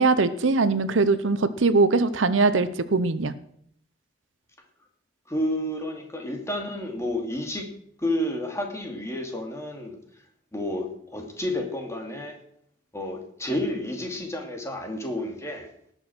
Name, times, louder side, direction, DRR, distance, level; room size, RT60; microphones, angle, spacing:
voice 1, 0.0-3.3, right 3 dB, 80° right, 14 dB, 0.8 m, -21 dB
voice 2, 5.3-7.7 8.0-10.0 10.5-12.4 12.9-15.7, left 1 dB, 15° left, 2 dB, 2.4 m, -30 dB
19.0 x 6.3 x 6.2 m, 0.67 s
head